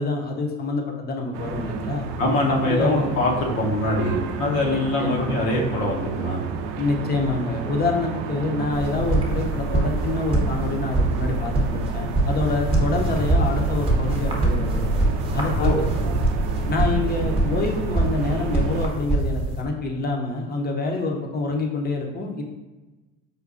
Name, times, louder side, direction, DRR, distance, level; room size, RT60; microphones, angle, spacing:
voice 1, 0.0-2.1 2.6-3.1 4.7-5.5 6.8-14.9 15.3-15.9 16.7-22.4, left 3 dB, 25° left, 2 dB, 0.6 m, -27 dB
sound 1, 1.3-18.9, right 6 dB, 70° right, 0.5 m, -32 dB
voice 2, 2.2-6.4 15.6-15.9, left 1 dB, 75° left, -2 dB, 0.9 m, -23 dB
sound 2, 8.7-19.6, right 2 dB, 15° right, 0.8 m, -24 dB
4.9 x 2.2 x 2.5 m, 1.1 s
supercardioid pair, 90°, 36 cm